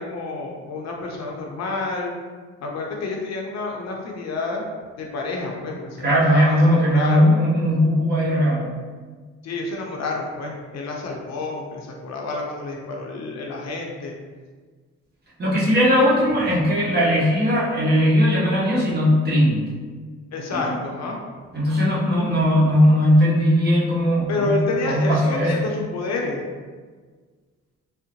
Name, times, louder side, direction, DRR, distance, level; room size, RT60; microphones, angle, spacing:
voice 1, 0.0-2.1 2.6-4.6 5.0-7.3 9.4-14.2 20.3-21.2 24.3-26.4, left 3 dB, 60° left, 0 dB, 0.6 m, -29 dB
voice 2, 6.0-8.7 15.4-19.6 20.5-20.7 21.5-24.5 24.9-25.6, equal, 35° right, -6 dB, 1.1 m, -18 dB
3.6 x 2.1 x 2.8 m, 1.5 s
cardioid pair, 90°, 30 cm